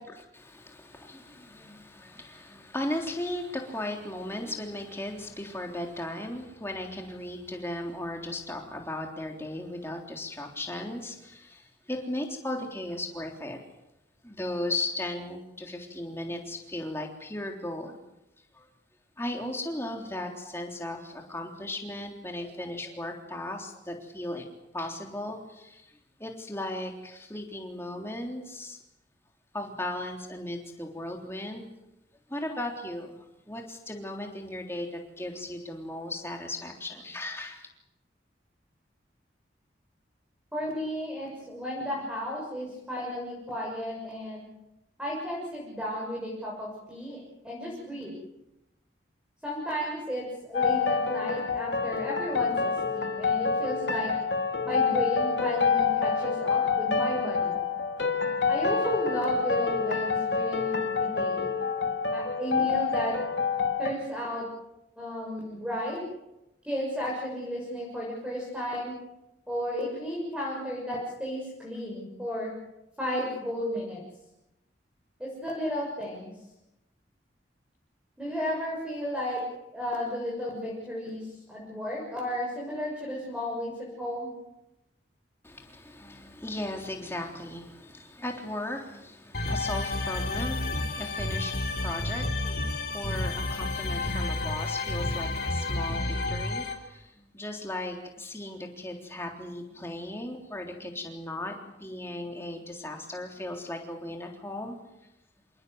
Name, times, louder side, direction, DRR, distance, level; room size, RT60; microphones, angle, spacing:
voice 1, 0.3-13.6 14.2-18.0 18.5-18.7 19.2-24.5 24.7-28.8 29.5-31.7 32.3-33.2 33.5-37.7 85.4-104.8, left 1 dB, 15° left, 2 dB, 3.5 m, -36 dB
voice 2, 40.5-44.4 45.0-48.1 49.4-54.1 54.6-57.6 58.5-61.5 62.1-63.1 63.8-64.5 65.0-66.0 66.6-68.9 69.5-72.5 73.0-74.0 75.2-76.3 78.2-79.4 79.7-84.3, equal, 5° right, -3 dB, 6.7 m, -33 dB
sound 1, 50.5-63.9, left 5 dB, 75° left, 2.1 m, -27 dB
sound 2, 89.3-96.7, left 2 dB, 55° left, 3.9 m, -30 dB
27.5 x 19.0 x 8.1 m, 0.93 s
head